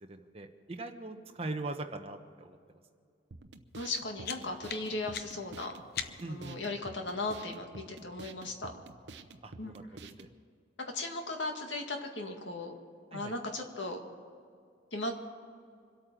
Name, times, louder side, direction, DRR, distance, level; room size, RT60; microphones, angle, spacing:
voice 1, 0.0-2.6 6.2-6.6 9.4-10.3 13.1-13.3, right 2 dB, 30° right, 4 dB, 1.1 m, -41 dB
sound 1, 3.3-10.3, right 3 dB, 70° right, 0.8 m, -50 dB
voice 2, 3.8-5.8 6.3-8.7 9.6-9.9 10.9-12.7 13.1-14.0 14.9-15.1, left 2 dB, 80° left, 3 dB, 2.0 m, -37 dB
sound 2, 3.8-6.5, left 8 dB, 55° left, 0.7 m, -43 dB
25.0 x 8.8 x 6.1 m, 2.3 s
head